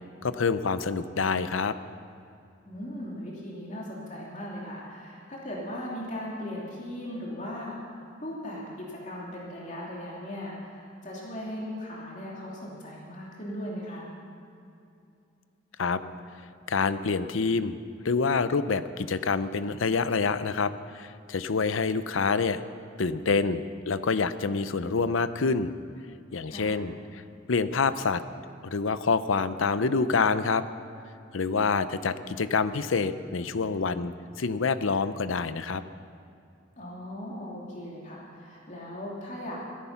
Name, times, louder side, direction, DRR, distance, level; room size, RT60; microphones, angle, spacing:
voice 1, 0.2-1.7 15.8-16.0 16.7-17.8 18.0-22.6 23.0-25.7 26.3-27.2 27.5-28.2 28.6-30.6 31.3-35.8, left 4 dB, 85° left, 13 dB, 0.7 m, -27 dB
voice 2, 2.6-14.1 26.5-26.8 36.8-39.6, left 1 dB, 40° left, -4 dB, 2.7 m, -38 dB
17.5 x 14.0 x 5.9 m, 2.6 s
head